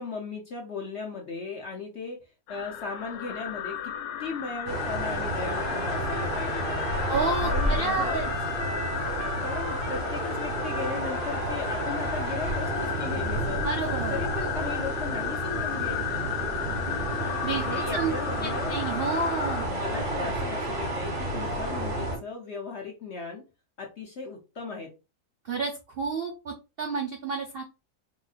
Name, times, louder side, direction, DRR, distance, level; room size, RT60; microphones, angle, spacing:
voice 1, 0.0-2.2 2.5-3.9 4.2-6.9 7.4-8.2 9.4-13.6 14.1-16.0 17.4-18.8 19.6-23.4 23.8-24.9, left 4 dB, 55° left, 0 dB, 0.7 m, -37 dB
sound 1, 2.5-19.7, left 10 dB, 85° left, 1.2 m, -34 dB
sound 2, 4.7-22.2, right 1 dB, 35° right, 1.5 m, -31 dB
Trumpet, 5.4-12.2, right 4 dB, 55° right, 0.9 m, -39 dB
voice 2, 7.1-8.3 13.6-14.2 17.4-18.1 18.4-19.6 25.4-27.6, right 4 dB, 80° right, 0 dB, 0.5 m, -30 dB
3.9 x 3.1 x 2.4 m, 0.29 s
omnidirectional pair, 1.9 m